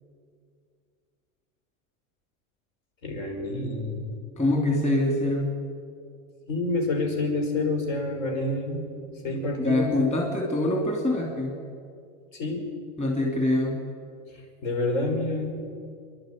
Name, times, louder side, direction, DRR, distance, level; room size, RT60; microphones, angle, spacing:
voice 1, 3.0-4.2 6.5-8.9 9.2-9.9 12.3-12.6 14.6-15.6, left 2 dB, 65° left, 2 dB, 5.9 m, -28 dB
voice 2, 4.4-5.5 9.6-11.6 13.0-13.8, left 1 dB, 15° left, 0 dB, 2.9 m, -24 dB
26.5 x 11.5 x 9.3 m, 2.3 s
supercardioid pair, 150°, 41 cm